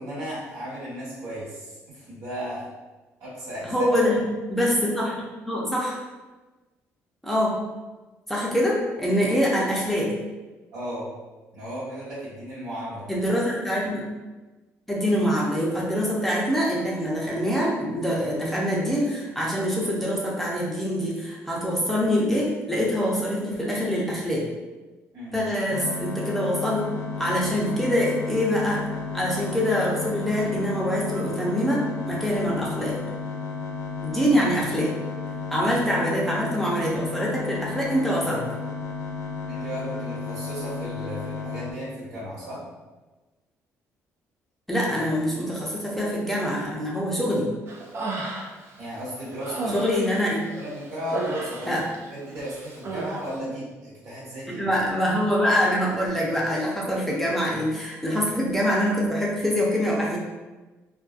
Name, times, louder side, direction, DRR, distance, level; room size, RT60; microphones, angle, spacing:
voice 1, 0.0-2.7 3.2-3.9 10.7-11.1 11.5-13.1 25.1-25.4 39.5-42.6 48.8-49.7 50.5-51.7 52.0-54.7 58.0-58.2, equal, 75° right, -9 dB, 1.4 m, -35 dB
voice 2, 3.6-4.2 4.5-6.0 7.2-7.6 8.3-10.1 13.1-14.0 14.9-24.4 25.3-26.8 27.2-28.9 29.1-33.0 34.0-34.9 35.5-38.4 44.7-47.5 49.7-50.4 51.7-51.8 54.5-60.2, equal, 5° left, -5 dB, 0.6 m, -24 dB
sound 1, 25.7-41.7, left 4 dB, 85° left, 0.4 m, -33 dB
Human voice, 47.7-48.7 49.1-52.1 52.4-53.2, right 2 dB, 45° right, 0.4 m, -33 dB
2.5 x 2.2 x 2.4 m, 1.2 s
cardioid pair, 80°, 6 cm